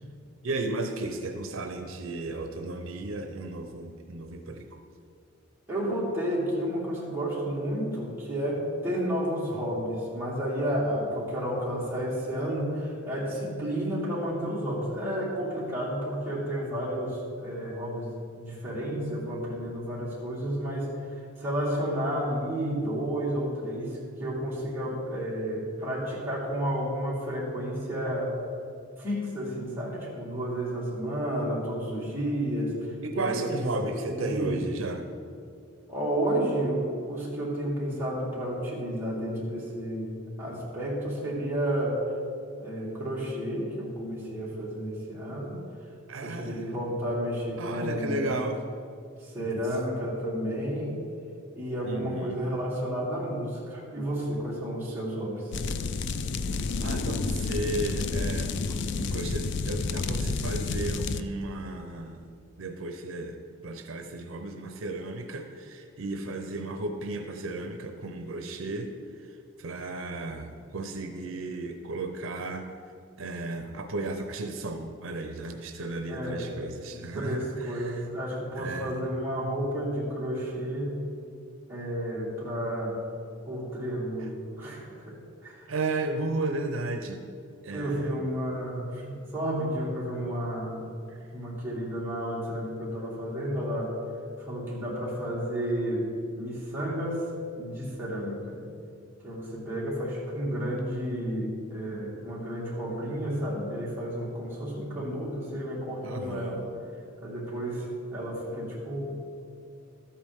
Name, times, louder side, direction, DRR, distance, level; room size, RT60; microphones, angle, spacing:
voice 1, 0.4-4.8 33.0-35.1 46.1-46.7 47.6-48.6 49.4-49.7 51.8-52.4 56.8-62.3 62.6-63.4 63.6-68.9 69.2-72.7 73.2-78.1 78.6-79.0 85.7-87.2 87.6-88.2 91.1-91.3 106.0-106.6, right 2 dB, 75° right, 6 dB, 0.7 m, -34 dB
voice 2, 5.7-28.3 29.0-34.6 35.9-42.0 42.6-45.6 46.2-48.2 49.2-50.9 51.5-55.5 76.1-76.5 77.1-81.0 81.7-83.0 83.4-85.7 87.7-90.9 91.3-94.0 94.4-96.1 96.3-97.3 97.6-98.6 99.2-106.7 107.2-109.1, equal, 10° right, -7 dB, 2.4 m, -31 dB
sound 1, 55.5-61.2, left 4 dB, 60° left, 0.4 m, -30 dB
13.0 x 8.7 x 3.6 m, 2.4 s
head